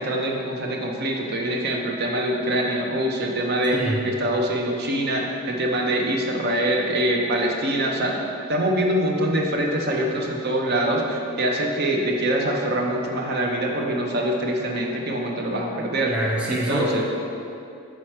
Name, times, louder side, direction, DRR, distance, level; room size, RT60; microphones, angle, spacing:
voice 1, 0.0-3.8 4.0-8.2 8.5-16.1 16.5-17.0, right 1 dB, 45° right, 0 dB, 0.7 m, -24 dB
voice 2, 3.7-4.1 16.1-17.0, right 1 dB, 5° right, -4 dB, 0.4 m, -25 dB
6.2 x 4.5 x 4.3 m, 2.7 s
head